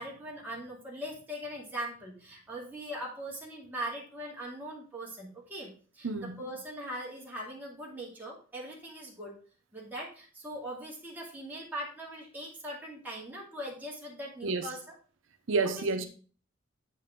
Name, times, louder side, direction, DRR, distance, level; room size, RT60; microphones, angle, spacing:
voice 1, 0.0-9.3 9.7-14.9 15.6-15.9, right 1 dB, 10° right, 2.4 m, -41 dB
voice 2, 6.0-6.4 14.4-14.7 15.5-16.0, right 3 dB, 85° right, 0.7 m, -29 dB
8.5 x 5.6 x 3.7 m
head